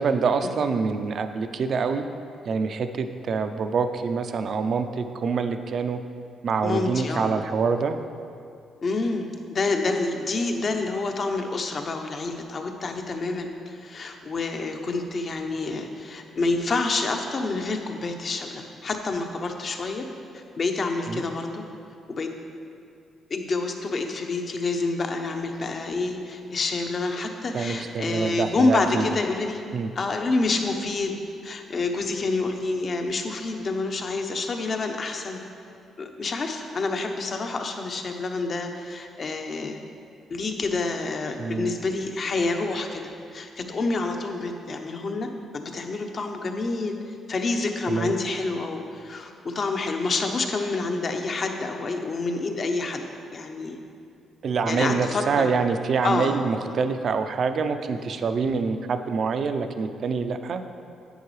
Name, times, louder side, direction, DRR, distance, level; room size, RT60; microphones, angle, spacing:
voice 1, 0.0-2.0 2.5-6.0 6.4-7.9 21.1-21.3 27.5-29.0 29.7-29.9 41.4-41.7 47.9-48.1 54.4-60.6, right 5 dB, 55° right, 8 dB, 0.5 m, -26 dB
voice 2, 6.6-7.4 8.8-20.1 20.3-21.6 22.1-22.3 23.3-29.6 29.9-35.4 36.0-39.8 40.3-53.1 53.3-53.8 54.7-55.5 56.0-56.4, left 3 dB, 45° left, 4 dB, 0.9 m, -28 dB
10.0 x 8.2 x 3.3 m, 2.4 s
cardioid pair, 90°, 0 cm